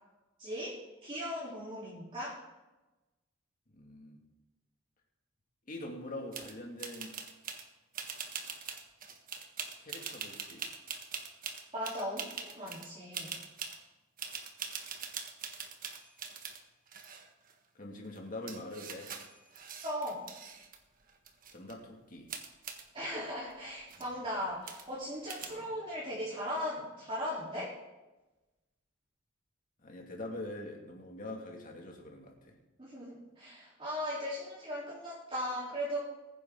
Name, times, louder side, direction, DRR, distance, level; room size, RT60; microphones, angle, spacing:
voice 1, 0.4-2.4 11.7-13.3 19.8-20.3 22.9-27.8 32.8-36.0, equal, 25° right, -9 dB, 3.9 m, -38 dB
voice 2, 3.7-4.2 5.7-7.2 9.8-10.7 17.7-19.1 21.5-22.3 25.4-25.7 29.8-32.6, left 1 dB, 40° left, 1 dB, 2.5 m, -44 dB
sound 1, 6.3-6.5 6.8-7.6 7.9-12.9 13.1-13.8 14.2-16.6 16.9-17.5 18.1-18.2 18.5-20.8 21.1-21.7 22.3-22.8 23.5-23.6 23.8-24.1 24.7-25.0 25.3-25.5, right 6 dB, 45° right, 1.4 m, -43 dB
21.5 x 10.0 x 4.0 m, 1.1 s
head